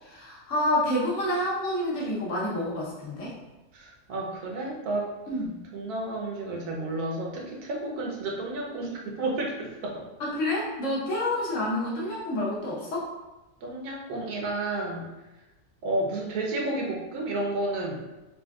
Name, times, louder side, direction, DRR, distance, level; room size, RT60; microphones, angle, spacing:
voice 1, 0.0-3.3 5.3-5.6 10.2-13.1, left 1 dB, 60° left, -5 dB, 1.2 m, -28 dB
voice 2, 3.7-5.2 5.7-10.1 13.6-15.0 15.8-18.0, right 2 dB, 85° right, -1 dB, 1.2 m, -31 dB
4.2 x 2.5 x 2.3 m, 1.1 s
omnidirectional pair, 1.6 m